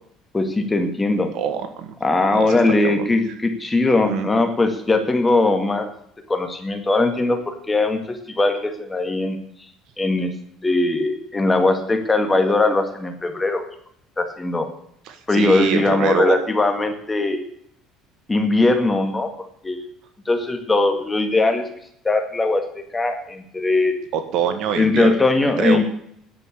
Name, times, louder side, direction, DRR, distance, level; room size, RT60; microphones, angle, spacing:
voice 1, 0.3-1.3 2.0-5.9 6.3-9.4 10.0-10.3 10.6-13.6 14.2-14.7 15.3-17.4 18.3-19.3 19.6-19.8 20.3-21.7 22.0-23.9 24.8-25.8, left 2 dB, 15° left, 6 dB, 1.9 m, -20 dB
voice 2, 1.3-1.9 2.3-3.1 4.0-4.3 15.1-16.3 24.1-25.1 25.4-25.8, right 8 dB, 65° right, 8 dB, 1.7 m, -24 dB
10.5 x 7.7 x 9.7 m, 0.69 s
cardioid pair, 135°, 0 cm